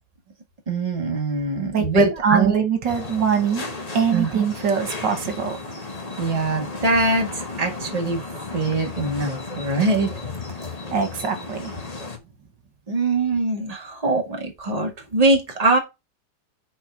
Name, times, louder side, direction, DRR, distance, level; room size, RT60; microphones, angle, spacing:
voice 1, 0.7-2.6 4.1-4.4 6.2-8.2 8.5-10.1 12.9-15.8, right 2 dB, 20° right, 1.9 m, -22 dB
voice 2, 1.7-3.6 3.9-5.6 10.9-11.7, right 6 dB, 85° right, 2.3 m, -22 dB
sound 1, 2.9-12.2, left 3 dB, 25° left, 1.2 m, -34 dB
6.9 x 4.4 x 5.9 m
omnidirectional pair, 1.9 m